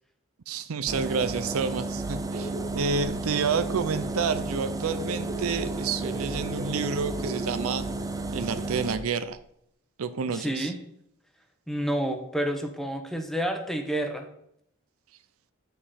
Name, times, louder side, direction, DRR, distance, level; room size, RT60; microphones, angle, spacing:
voice 1, 0.5-7.8 8.3-9.4 10.0-10.7, right 5 dB, 80° right, 12 dB, 0.5 m, -29 dB
sound 1, 0.9-9.0, right 3 dB, 15° right, 0.5 m, -33 dB
sound 2, 2.2-9.0 9.3-9.4, right 1 dB, 35° right, 1.6 m, -39 dB
voice 2, 10.3-10.7 11.7-14.3, right 1 dB, ahead, 4 dB, 0.8 m, -29 dB
9.1 x 5.2 x 4.2 m, 0.74 s
head